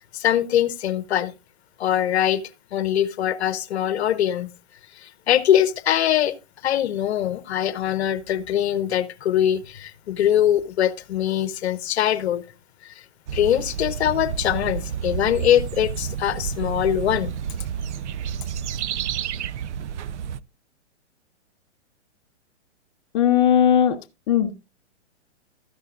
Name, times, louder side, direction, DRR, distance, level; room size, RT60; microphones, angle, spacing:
voice 1, 0.0-1.3 1.8-2.4 2.7-4.5 5.0-6.4 6.6-12.4 12.8-12.9 13.3-17.4, left 11 dB, 65° left, 1.0 m, -22 dB
sound 1, 13.3-20.4, right 8 dB, 70° right, 0.6 m, -30 dB
voice 2, 23.1-24.0 24.3-24.5, left 9 dB, 45° left, 0.8 m, -18 dB
13.0 x 10.5 x 2.5 m
hypercardioid pair, 135°, 36 cm